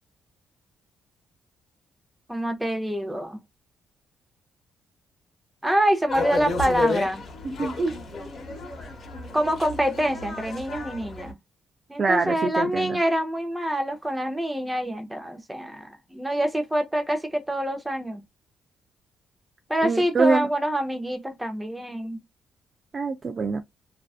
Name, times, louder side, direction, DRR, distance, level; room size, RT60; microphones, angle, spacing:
voice 1, 2.3-3.4 5.6-7.2 9.3-11.4 11.9-18.2 19.7-22.2, right 1 dB, 10° right, 0.6 m, -26 dB
sound 1, 6.1-11.3, left 2 dB, 50° left, 0.8 m, -31 dB
voice 2, 7.6-8.0 12.0-13.0 19.8-20.5 22.9-23.6, right 4 dB, 40° right, 0.3 m, -24 dB
2.5 x 2.2 x 2.3 m
cardioid pair, 90°, 0 cm